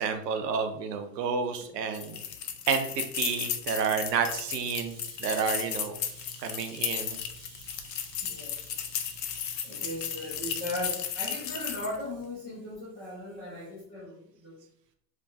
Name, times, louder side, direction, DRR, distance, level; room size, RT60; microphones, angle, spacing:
voice 1, 0.0-2.2 2.7-6.0 6.4-7.2 9.3-9.7, right 6 dB, 80° right, 7 dB, 0.6 m, -30 dB
sound 1, 1.9-12.0, left 9 dB, 80° left, 0.6 m, -35 dB
voice 2, 4.8-5.6 6.0-14.6, left 1 dB, 20° left, -8 dB, 0.3 m, -40 dB
2.9 x 2.3 x 2.5 m, 0.70 s
hypercardioid pair, 135°, 49 cm